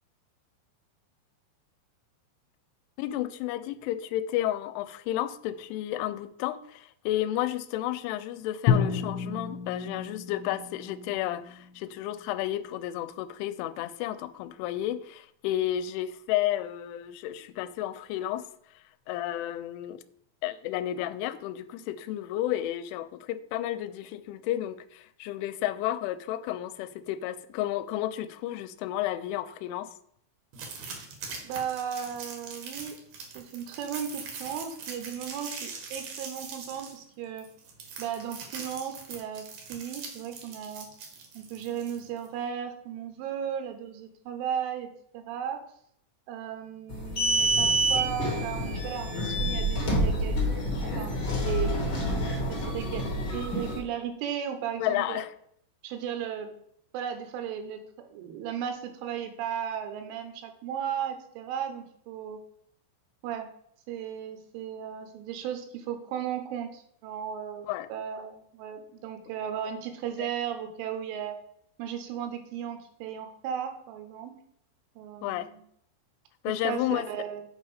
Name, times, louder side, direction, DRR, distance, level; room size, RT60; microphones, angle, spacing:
voice 1, 3.0-18.5 19.1-20.0 20.4-29.9 54.8-55.3 67.7-67.9 70.2-70.3 75.2-75.5 76.4-77.1, left 13 dB, 85° left, 2.9 m, -32 dB
Drum, 8.7-12.7, left 7 dB, 70° left, 2.9 m, -30 dB
sound 1, 30.5-42.3, right 5 dB, 65° right, 2.1 m, -42 dB
voice 2, 31.4-33.0 33.4-37.5 38.0-39.5 39.7-40.9 41.4-44.9 45.1-45.6 46.3-50.4 50.8-51.1 51.4-51.9 52.5-53.0 53.3-55.3 55.8-56.5 56.9-62.4 63.2-63.5 63.9-71.4 71.8-74.3 75.0-75.6 76.6-77.4, right 8 dB, 80° right, 3.5 m, -35 dB
sound 2, 46.9-53.8, right 1 dB, 45° left, 1.6 m, -27 dB
8.0 x 5.6 x 4.9 m
omnidirectional pair, 5.6 m